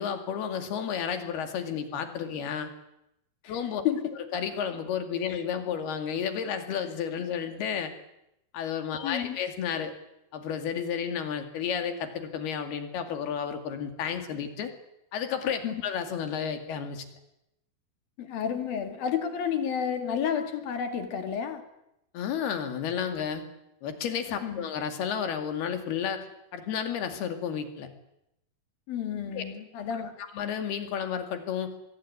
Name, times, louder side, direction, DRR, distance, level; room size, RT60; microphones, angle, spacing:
voice 1, 0.0-2.7 3.5-3.8 4.3-7.9 8.5-9.9 10.3-14.7 15.1-17.0 22.1-23.4 23.8-26.3 26.5-27.9 29.3-29.4 30.3-31.8, left 7 dB, 85° left, 7 dB, 4.4 m, -32 dB
voice 2, 9.0-9.4 15.6-15.8 18.2-21.6 24.4-24.7 28.9-30.2, left 8 dB, 70° left, 7 dB, 4.0 m, -31 dB
24.5 x 21.5 x 9.7 m, 0.84 s
omnidirectional pair, 4.4 m